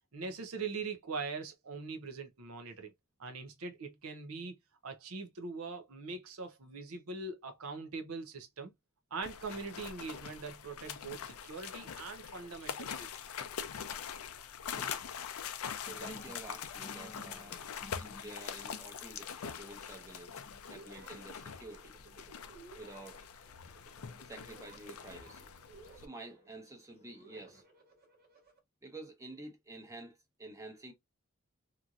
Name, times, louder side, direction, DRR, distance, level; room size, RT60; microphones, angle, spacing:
voice 1, 0.1-2.9 3.2-4.6 4.8-8.7 9.1-13.1, right 4 dB, 80° right, 0.7 m, -42 dB
sound 1, 9.2-26.1, left 7 dB, 80° left, 0.5 m, -44 dB
sound 2, 15.8-18.9 19.8-20.0 20.3-22.4 23.7-25.0 25.7-27.6, left 1 dB, 30° left, 0.5 m, -56 dB
voice 2, 15.8-17.7 18.0-20.4 20.7-21.9 22.7-23.3 24.2-25.5 25.9-27.6 28.8-30.9, right 2 dB, 15° right, 0.8 m, -50 dB
sound 3, 20.6-28.6, right 3 dB, 45° right, 0.9 m, -59 dB
2.9 x 2.6 x 2.4 m
head